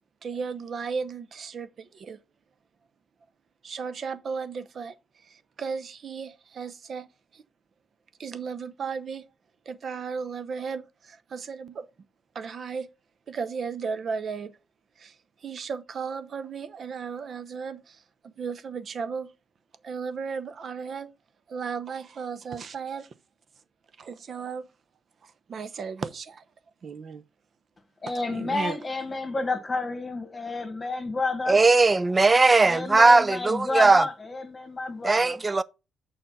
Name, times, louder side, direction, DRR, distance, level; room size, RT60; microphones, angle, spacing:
voice 1, 0.2-2.2 3.6-5.0 5.2-7.1 7.3-7.4 8.2-9.3 9.7-11.9 12.3-12.9 13.3-14.6 15.0-15.2 15.4-19.3 19.8-21.1 21.5-23.1 24.0-24.7 25.2-26.4 26.8-27.2 28.1-28.8, right 5 dB, 50° right, 0.8 m, -35 dB
voice 2, 28.0-31.6 32.5-35.4, left 3 dB, 25° left, 1.7 m, -30 dB
voice 3, 31.5-34.1 35.0-35.6, right 3 dB, 25° right, 0.4 m, -19 dB
6.7 x 5.0 x 5.6 m
cardioid pair, 90°, 0 cm